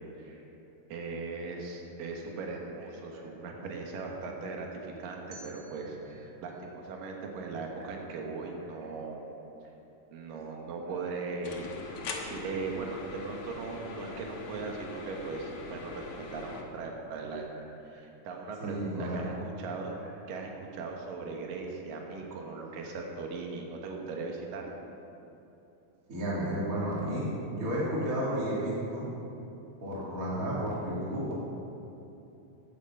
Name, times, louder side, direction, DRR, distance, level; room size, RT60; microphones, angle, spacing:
voice 1, 0.9-9.2 10.1-17.4 17.9-20.0 20.3-24.8, right 4 dB, 75° right, 1 dB, 3.0 m, -39 dB
sound 1, 5.3-8.3, right 2 dB, 45° right, 3.4 m, -56 dB
sound 2, 11.4-16.6, left 3 dB, 55° left, 1.7 m, -41 dB
voice 2, 18.6-19.3 26.1-29.1 29.8-31.3, right 1 dB, 30° right, -6 dB, 2.1 m, -32 dB
15.5 x 9.2 x 5.5 m, 2.9 s
omnidirectional pair, 3.9 m